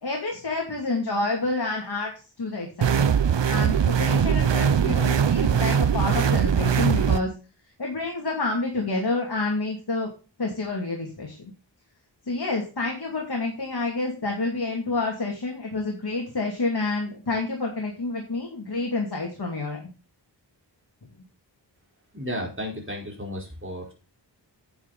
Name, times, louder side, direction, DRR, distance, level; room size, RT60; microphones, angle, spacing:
voice 1, 0.0-2.1 2.4-3.2 3.5-7.3 7.8-10.1 10.4-11.4 12.3-19.8, left 3 dB, 60° left, 0 dB, 2.6 m, -28 dB
sound 1, 2.8-7.2, right 7 dB, 75° right, 0.9 m, -21 dB
voice 2, 22.1-23.9, equal, 30° right, 0 dB, 4.3 m, -33 dB
9.3 x 8.6 x 4.1 m, 0.33 s
wide cardioid pair, 80°, 44 cm